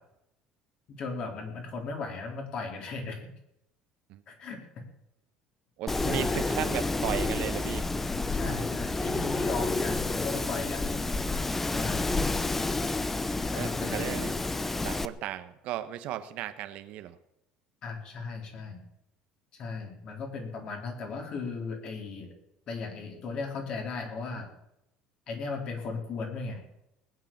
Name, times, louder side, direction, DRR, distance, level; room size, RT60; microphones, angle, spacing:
voice 1, 0.9-3.3 4.3-4.8 6.0-6.4 8.3-11.0 11.7-12.1 13.5-14.2 17.8-18.8 19.6-22.3 22.7-24.5 25.3-26.6, left 4 dB, 45° left, 3 dB, 3.9 m, -36 dB
voice 2, 5.8-7.9 13.6-14.3 14.8-17.2, right 12 dB, 60° right, 10 dB, 1.1 m, -35 dB
Wind, 5.9-15.0, left 3 dB, 10° left, 0.7 m, -30 dB
19.0 x 9.8 x 7.4 m, 0.86 s
cardioid pair, 155°, 2 cm